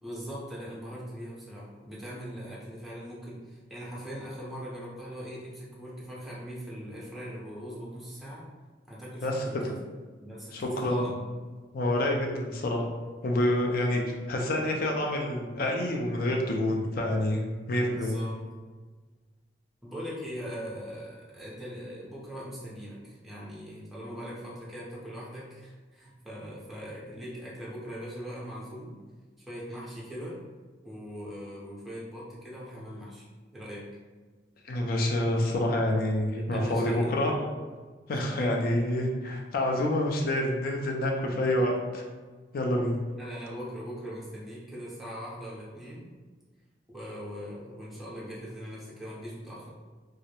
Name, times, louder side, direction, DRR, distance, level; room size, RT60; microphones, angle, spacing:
voice 1, 0.0-8.5 8.9-9.8 10.2-11.2 17.9-18.4 19.8-28.9 29.5-30.4 30.8-33.3 33.5-33.9 36.3-37.2 38.1-38.3 43.2-46.0 46.9-49.7, equal, ahead, -7 dB, 0.6 m, -40 dB
voice 2, 10.5-11.1 11.7-12.9 13.2-17.4 17.7-18.1 34.6-37.3 38.1-42.0 42.5-42.9, left 1 dB, 55° left, 1 dB, 0.4 m, -27 dB
2.3 x 2.0 x 2.8 m, 1.4 s
head